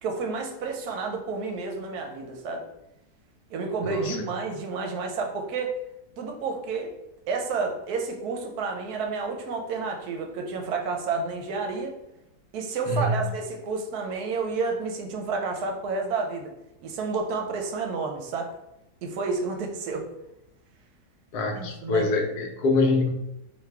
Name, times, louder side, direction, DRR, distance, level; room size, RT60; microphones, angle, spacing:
voice 1, 0.0-2.6 3.5-5.8 6.2-6.9 7.3-12.0 12.5-16.5 16.8-18.5 19.0-20.1 21.5-22.1, right 4 dB, 80° right, 3 dB, 1.2 m, -30 dB
voice 2, 3.8-4.2 12.9-13.3 21.3-23.1, left 3 dB, 80° left, 3 dB, 1.2 m, -25 dB
4.1 x 2.9 x 3.3 m, 0.87 s
omnidirectional pair, 1.7 m